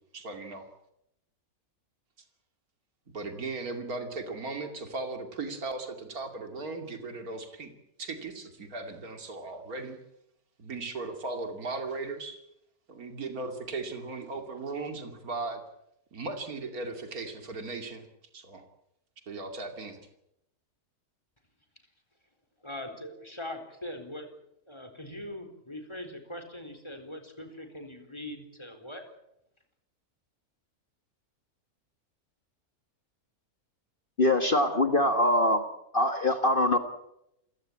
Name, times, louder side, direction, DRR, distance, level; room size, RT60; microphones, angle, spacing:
voice 1, 0.1-0.6 3.1-7.7 8.0-10.0 10.6-12.4 12.9-15.6 16.1-18.1 18.3-18.6 19.3-20.0, right 3 dB, 75° right, 5 dB, 3.1 m, -37 dB
voice 2, 22.6-24.3 24.7-29.0, left 1 dB, 20° left, 5 dB, 4.2 m, -41 dB
voice 3, 34.2-35.6 35.9-36.8, left 1 dB, 35° left, 7 dB, 1.8 m, -23 dB
29.0 x 16.5 x 8.7 m, 0.83 s
omnidirectional pair, 1.6 m